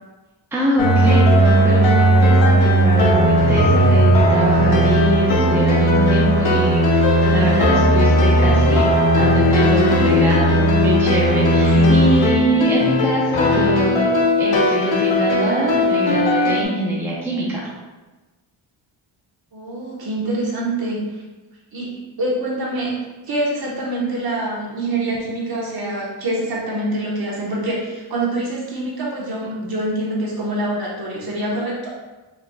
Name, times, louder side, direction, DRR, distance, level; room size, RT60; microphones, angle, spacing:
voice 1, 0.5-14.1 14.4-17.6, right 1 dB, 5° right, -5 dB, 0.6 m, -23 dB
sound 1, 0.8-16.6, equal, 75° left, 0.9 m, -16 dB
voice 2, 11.7-12.2 19.5-21.0 21.7-21.9 22.2-23.0 23.3-31.9, right 1 dB, 50° right, -4 dB, 1.2 m, -25 dB
4.8 x 3.8 x 2.3 m, 1.2 s
wide cardioid pair, 155°, 47 cm